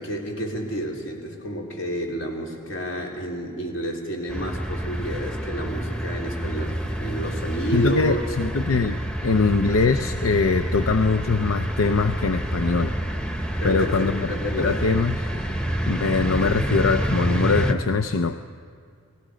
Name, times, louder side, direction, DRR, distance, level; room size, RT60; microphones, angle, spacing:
voice 1, 0.0-6.7 7.0-8.2 13.6-14.7, right 1 dB, 65° left, -1 dB, 3.6 m, -30 dB
sound 1, 4.3-17.7, right 1 dB, 5° left, 1.0 m, -28 dB
voice 2, 7.7-13.0 13.6-15.3 15.8-18.4, left 4 dB, 90° left, 7 dB, 0.6 m, -22 dB
30.0 x 19.5 x 5.1 m, 2.3 s
head